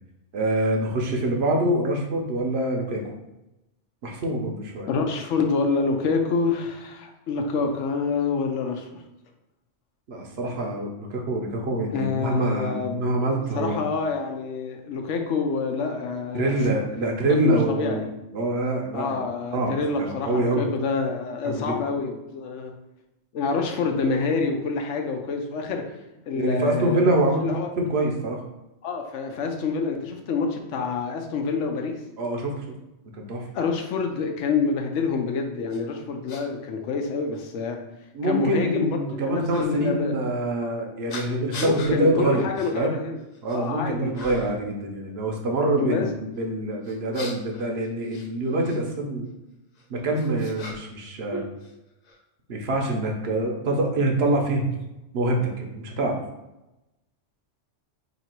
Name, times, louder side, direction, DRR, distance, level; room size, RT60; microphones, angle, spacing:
voice 1, 0.3-3.0 4.0-4.9 10.1-13.8 16.3-18.0 18.3-19.2 19.5-20.7 21.4-21.8 26.3-27.4 27.8-28.4 32.2-32.7 33.2-33.4 38.1-42.5 42.7-43.0 43.4-49.3 49.9-51.4 52.5-54.8 55.1-56.2, right 2 dB, 65° right, 1 dB, 0.9 m, -25 dB
voice 2, 4.9-9.0 11.9-16.5 17.4-18.1 18.9-22.7 23.3-25.8 26.3-27.1 27.4-27.7 28.8-32.0 33.5-37.8 38.2-38.9 39.2-40.1 41.6-43.2 43.5-44.1 45.8-46.1, left 4 dB, 75° left, 4 dB, 0.9 m, -27 dB
sound 1, 35.7-35.8 36.3-36.4 37.3-37.4 39.5-39.7 41.1-41.9 42.5-42.7 43.2-43.7 44.1-44.6 46.8-48.8 49.7-51.0 51.3-52.2, left 2 dB, 50° left, 0.5 m, -39 dB
3.0 x 2.8 x 4.3 m, 0.95 s
omnidirectional pair, 1.2 m